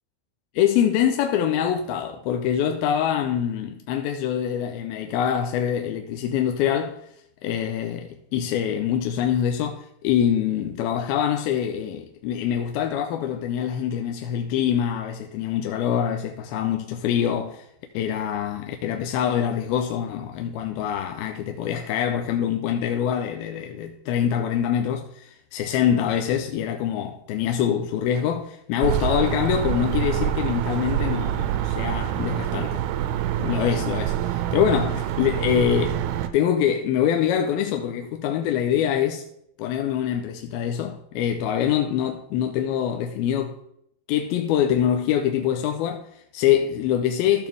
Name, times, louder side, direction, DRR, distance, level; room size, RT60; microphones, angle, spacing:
voice 1, 0.6-7.0 7.4-17.7 17.9-32.8 33.4-36.0 36.3-39.2 39.6-43.6 44.1-47.5, left 9 dB, 85° left, 2.5 m, -24 dB
sound 1, 28.8-36.3, right 11 dB, 85° right, 2.5 m, -26 dB
13.5 x 7.0 x 3.4 m
omnidirectional pair, 4.4 m